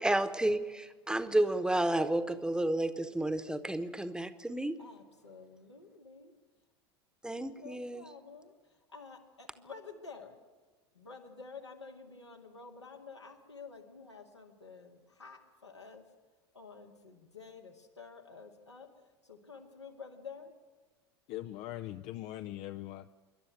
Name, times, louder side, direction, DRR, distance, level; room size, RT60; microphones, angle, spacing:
voice 1, 0.0-4.8 7.2-8.0, right 1 dB, 5° right, 11 dB, 1.1 m, -31 dB
voice 2, 4.8-6.3 7.4-10.4 10.9-16.1 16.5-20.5, left 4 dB, 85° left, 0 dB, 2.2 m, -50 dB
voice 3, 21.3-23.1, left 14 dB, 45° left, 10 dB, 0.6 m, -41 dB
26.5 x 11.5 x 9.9 m, 1.3 s
figure-of-eight pair, 75°, 14 cm